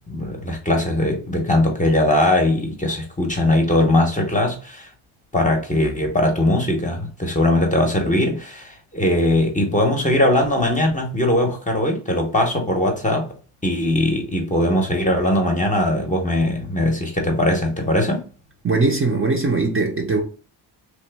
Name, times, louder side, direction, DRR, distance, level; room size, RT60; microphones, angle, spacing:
voice 1, 0.1-4.9 5.3-13.3 13.6-18.3, left 1 dB, 15° left, 0.8 m, -20 dB
voice 2, 18.6-20.2, right 3 dB, 25° right, 0.6 m, -20 dB
3.0 x 2.1 x 3.3 m
cardioid pair, 80°, 49 cm